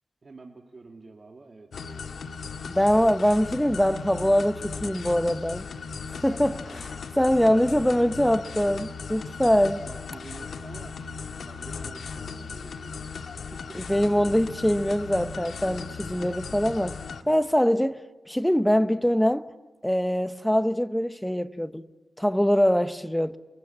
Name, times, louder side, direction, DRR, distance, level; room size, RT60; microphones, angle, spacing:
voice 1, 0.2-2.1 6.7-7.9 9.8-12.9 13.2-13.3 13.7-13.8, right 3 dB, 45° right, 2.4 m, -48 dB
sound 1, 1.7-17.2, left 5 dB, 90° left, 1.7 m, -37 dB
voice 2, 2.7-5.7 6.1-6.9 7.2-9.8 13.8-17.0 17.3-18.0 18.3-19.5 19.8-21.9 22.2-23.4, equal, 5° left, 1.0 m, -23 dB
28.5 x 23.5 x 8.7 m
wide cardioid pair, 95°, 0 cm